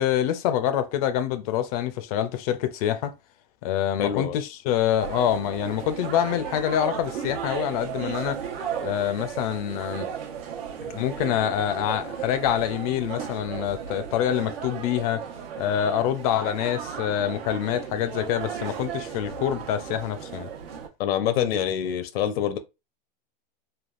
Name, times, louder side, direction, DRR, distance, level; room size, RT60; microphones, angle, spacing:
voice 1, 0.0-3.1 3.6-8.4 8.8-10.1 10.9-15.2 15.6-20.5, left 11 dB, 40° left, 0.4 m, -26 dB
voice 2, 4.0-4.4 21.0-22.6, left 9 dB, 80° left, 0.7 m, -25 dB
sound 1, 5.0-20.9, right 8 dB, 80° right, 1.0 m, -35 dB
3.4 x 2.3 x 2.4 m
supercardioid pair, 155°, 30 cm